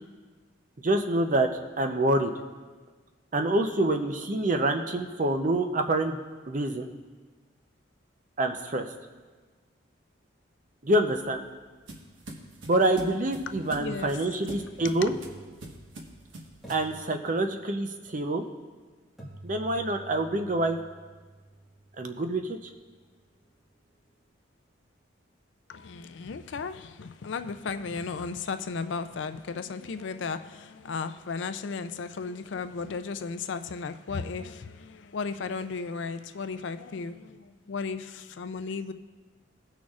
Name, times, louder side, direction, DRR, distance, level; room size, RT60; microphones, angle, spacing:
voice 1, 0.8-1.5 1.8-2.3 3.3-6.2 6.5-6.9 8.4-8.8 10.8-11.5 12.6-15.1 16.7-18.4 19.4-20.8 22.0-22.6, right 1 dB, 40° right, 6 dB, 0.6 m, -26 dB
sound 1, 10.9-16.9, right 1 dB, 85° right, 1.2 m, -44 dB
voice 2, 13.5-14.2 14.8-15.1 25.7-38.9, left 4 dB, 70° left, 11 dB, 0.4 m, -35 dB
sound 2, 15.1-16.2 16.6-17.9 19.2-23.1, right 1 dB, ahead, 1.5 m, -49 dB
18.5 x 6.3 x 2.4 m, 1.4 s
head